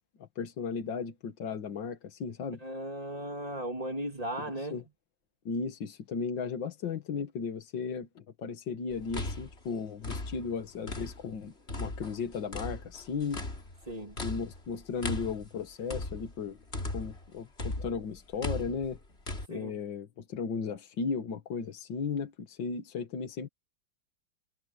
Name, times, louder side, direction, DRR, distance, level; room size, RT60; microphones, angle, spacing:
voice 1, 0.4-2.6 4.7-4.8 5.5-13.4 14.2-16.6 16.9-17.5 17.8-19.0 19.5-23.5, left 5 dB, 80° left, 2.2 m, -35 dB
voice 2, 2.6-4.8 13.8-14.2 19.5-19.8, right 1 dB, 20° right, 3.0 m, -37 dB
sound 1, 8.9-11.4 11.7-17.3 17.6-19.5, left 2 dB, 35° left, 3.3 m, -38 dB
omnidirectional pair, 2.0 m